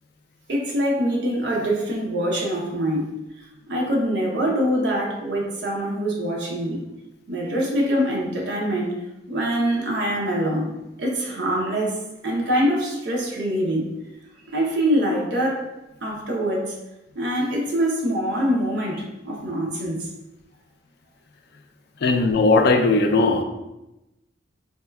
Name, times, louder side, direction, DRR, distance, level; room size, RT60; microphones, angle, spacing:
voice 1, 0.5-3.1 3.7-6.8 7.3-9.0 9.3-13.9 14.5-15.7 16.0-16.8 17.2-20.1, equal, 65° right, -2 dB, 0.6 m, -24 dB
voice 2, 22.0-23.4, left 3 dB, 60° left, 5 dB, 0.3 m, -18 dB
4.2 x 2.2 x 2.2 m, 0.95 s
head